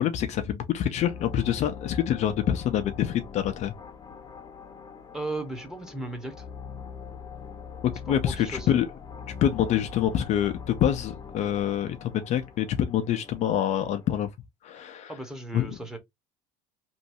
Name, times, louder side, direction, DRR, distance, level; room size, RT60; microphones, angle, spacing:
voice 1, 0.0-3.7 8.1-8.9 9.4-14.3 14.6-15.1 15.5-15.7, left 10 dB, 50° left, 0.6 m, -26 dB
sound 1, 0.9-14.3, left 6 dB, 25° left, 0.9 m, -42 dB
voice 2, 5.1-6.4 8.1-8.7 15.1-16.0, right 2 dB, 5° right, 1.2 m, -36 dB
3.1 x 2.7 x 2.7 m
supercardioid pair, 110°, 15 cm